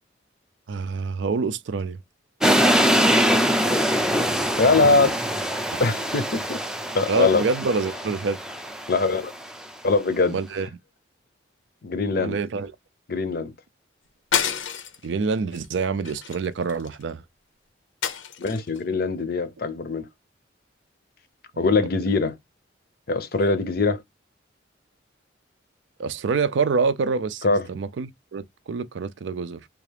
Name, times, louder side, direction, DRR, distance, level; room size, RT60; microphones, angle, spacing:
voice 1, 0.7-2.0 7.1-8.4 10.3-10.7 12.1-12.7 15.0-17.2 21.5-21.7 26.0-29.7, right 4 dB, 75° right, 0.4 m, -26 dB
sound 1, 2.4-9.5, equal, 5° right, 0.4 m, -23 dB
voice 2, 4.6-5.2 5.8-6.6 6.9-7.4 8.9-9.3 9.8-10.4 11.8-12.4 13.1-13.5 18.4-20.1 21.6-22.4 23.1-24.0 27.4-27.7, left 3 dB, 50° left, 0.6 m, -22 dB
sound 2, 14.3-15.1 15.5-15.7 16.0-17.0 18.0-18.8, left 8 dB, 90° left, 0.7 m, -28 dB
3.5 x 2.4 x 3.3 m
head